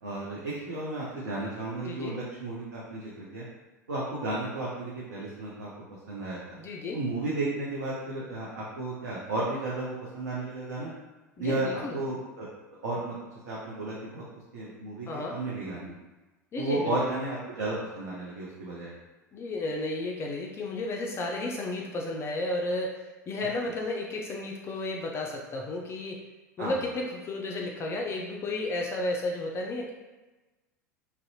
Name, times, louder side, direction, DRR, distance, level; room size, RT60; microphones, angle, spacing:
voice 1, 0.0-3.4 3.9-5.7 6.1-6.6 6.9-10.9 11.4-12.5 12.8-13.2 13.4-15.9 16.6-18.9 26.6-26.7, right 2 dB, 75° right, -6 dB, 0.5 m, -33 dB
voice 2, 1.9-2.2 6.6-7.0 11.4-12.0 15.1-15.4 16.5-17.0 19.3-26.3 26.6-29.9, left 2 dB, 25° left, 0 dB, 0.3 m, -33 dB
2.6 x 2.0 x 2.7 m, 1.1 s
figure-of-eight pair, 80°, 9 cm